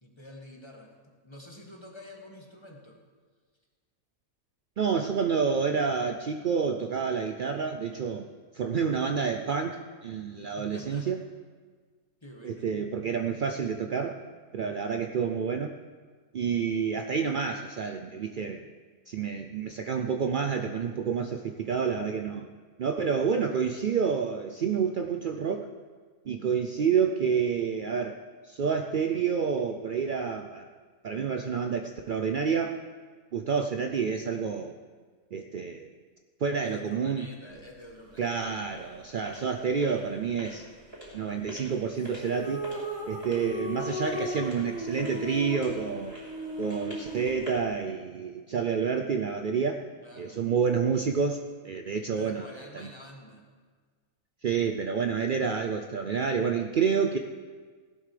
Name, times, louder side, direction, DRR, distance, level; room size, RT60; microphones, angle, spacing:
voice 1, 0.0-3.0 10.5-11.1 12.2-12.7 36.6-38.4 50.0-50.4 52.1-53.4, left 1 dB, 20° left, 0 dB, 1.6 m, -48 dB
voice 2, 4.8-8.3 8.5-11.2 12.4-14.2 14.5-15.7 16.3-18.6 19.1-22.5 22.8-25.7 26.3-30.7 31.0-32.8 33.3-34.8 35.3-35.9 36.4-37.3 38.2-40.7 41.1-42.6 43.1-46.2 46.6-49.8 50.2-51.4 51.6-52.9 54.4-57.2, right 6 dB, 70° right, 5 dB, 0.4 m, -29 dB
sound 1, 37.5-47.7, equal, 20° right, 3.6 m, -47 dB
sound 2, 42.0-47.3, equal, 5° right, 1.5 m, -36 dB
17.0 x 12.0 x 3.4 m, 1.5 s
omnidirectional pair, 1.5 m